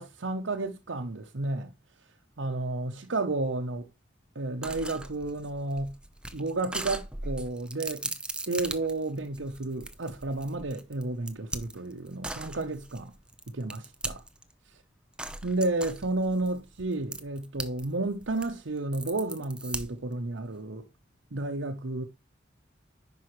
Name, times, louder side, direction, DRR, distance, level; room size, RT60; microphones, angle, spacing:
voice 1, 0.0-1.7 2.4-3.9 4.3-5.9 6.3-8.1 8.5-13.1 13.5-14.1 15.4-20.9 21.3-22.0, right 2 dB, 90° right, 0.9 m, -32 dB
sound 1, 4.6-14.5 15.2-17.9 18.1-20.1, right 2 dB, 5° right, 0.7 m, -38 dB
10.5 x 5.4 x 3.1 m
head